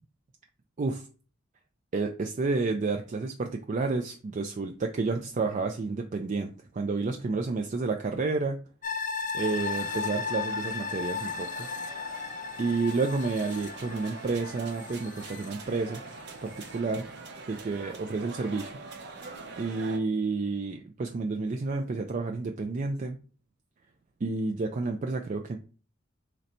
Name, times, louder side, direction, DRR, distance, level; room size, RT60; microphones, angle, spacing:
voice 1, 1.9-8.6 9.3-11.7 12.6-16.0 16.4-17.1 17.5-18.7 19.1-19.3 19.6-23.2 24.2-25.6, right 3 dB, 40° right, 4 dB, 0.4 m, -30 dB
sound 1, 8.8-16.1 16.5-16.6, left 5 dB, 40° left, 0.5 m, -35 dB
sound 2, 9.4-20.0, right 4 dB, 60° right, 0.9 m, -44 dB
3.9 x 3.2 x 4.2 m, 0.38 s
head